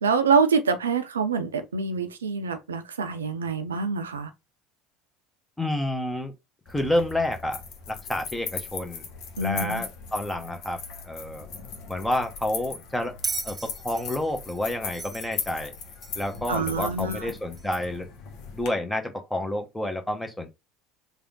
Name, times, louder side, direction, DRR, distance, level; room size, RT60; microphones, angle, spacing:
voice 1, 0.0-4.3 9.4-9.8 16.5-17.3, right 5 dB, 85° right, 0.5 m, -25 dB
voice 2, 5.6-6.3 6.7-7.6 7.9-9.0 9.4-10.8 11.0-11.5 11.9-13.1 13.4-13.6 13.8-15.7 16.1-18.1 18.5-20.5, left 1 dB, 10° left, 0.9 m, -29 dB
sound 1, 6.7-18.7, left 5 dB, 60° left, 0.9 m, -39 dB
Bell, 13.2-16.4 17.6-17.7, right 5 dB, 25° right, 0.4 m, -36 dB
3.4 x 2.4 x 3.8 m
hypercardioid pair, 70°, 0 cm